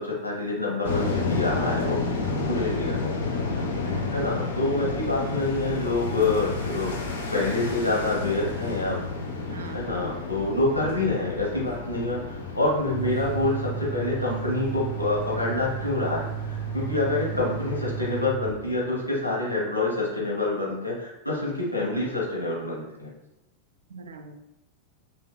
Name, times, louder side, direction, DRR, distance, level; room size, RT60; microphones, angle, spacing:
voice 1, 0.0-2.0 2.4-3.1 4.1-7.0 7.3-9.0 9.7-12.2 12.5-16.2 16.5-23.1, left 2 dB, 85° left, -5 dB, 0.9 m, -27 dB
sound 1, 0.8-18.2, left 3 dB, 65° left, 0.5 m, -31 dB
voice 2, 3.8-4.3 9.5-10.2 17.3-17.5 23.9-24.4, right 4 dB, 70° right, 5 dB, 0.3 m, -42 dB
sound 2, 12.9-19.1, right 9 dB, 45° left, 1.0 m, -34 dB
5.4 x 2.2 x 2.2 m, 0.93 s
figure-of-eight pair, 90°, 0 cm